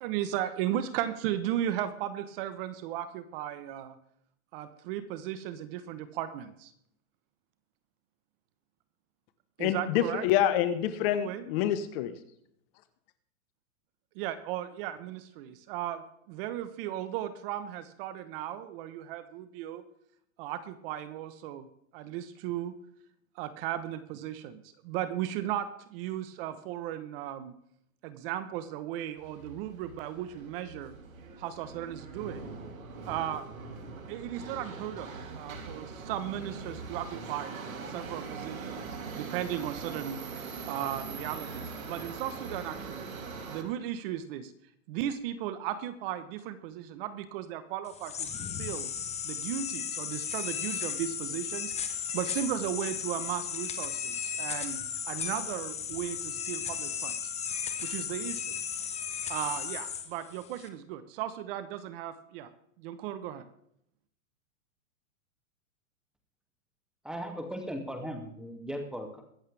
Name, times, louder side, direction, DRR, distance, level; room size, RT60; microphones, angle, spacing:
voice 1, 0.0-3.9 4.5-6.7 9.6-10.3 11.1-11.4 14.2-16.0 16.3-19.8 20.4-21.7 21.9-22.7 23.4-27.5 28.0-30.9 31.4-32.4 33.0-33.4 34.1-35.1 35.3-37.5 37.9-38.8 39.1-40.2 40.7-43.1 43.5-44.5 44.9-48.3 48.6-48.9 49.2-51.7 52.1-54.8 55.1-57.1 57.8-58.6 59.3-62.5 62.8-63.4, right 11 dB, 45° right, 12 dB, 1.2 m, -36 dB
voice 2, 9.6-12.1, left 11 dB, 45° left, 11 dB, 1.3 m, -27 dB
Subway metro underground, 29.2-43.6, right 4 dB, 90° right, 3.0 m, -42 dB
sound 1, 47.9-60.7, left 7 dB, 15° left, 1.3 m, -35 dB
voice 3, 67.0-69.2, equal, ahead, 4 dB, 2.5 m, -37 dB
23.5 x 8.0 x 3.5 m, 0.71 s
hypercardioid pair, 140°, 40 cm